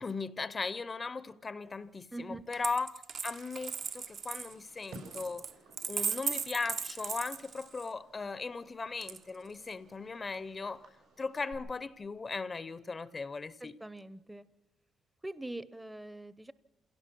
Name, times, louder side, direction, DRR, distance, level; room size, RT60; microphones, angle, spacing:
voice 1, 0.0-5.5 5.9-10.9 11.2-13.8, left 4 dB, 30° left, 0.6 m, -38 dB
voice 2, 2.1-2.4 13.6-14.5 15.2-16.5, right 1 dB, 10° right, 0.6 m, -43 dB
Coin (dropping), 2.5-7.9 9.0-9.7, right 6 dB, 55° right, 0.7 m, -38 dB
Fireworks, 3.5-11.5, right 2 dB, 85° right, 5.9 m, -57 dB
27.5 x 17.0 x 6.1 m
cardioid pair, 90°, 0 cm